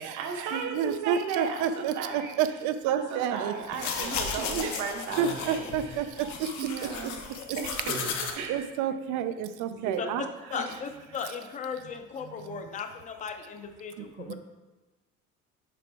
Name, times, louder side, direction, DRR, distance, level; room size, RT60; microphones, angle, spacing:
voice 1, 0.0-6.2 6.6-7.2 7.6-8.7 9.7-10.1 10.5-10.8, right 5 dB, 75° right, 3 dB, 1.0 m, -35 dB
voice 2, 0.5-1.9 2.4-3.5 4.5-4.7 5.2-6.5 8.5-10.2 14.3-14.4, right 9 dB, 90° right, 11 dB, 0.5 m, -29 dB
sound 1, 3.6-8.3, left 6 dB, 75° left, 0.9 m, -35 dB
sound 2, 5.1-5.6 7.9-8.6, right 3 dB, 20° right, 0.5 m, -41 dB
voice 3, 10.5-14.3, left 6 dB, 25° left, 6 dB, 0.5 m, -37 dB
6.8 x 5.0 x 3.4 m, 1.1 s
cardioid pair, 160°, 29 cm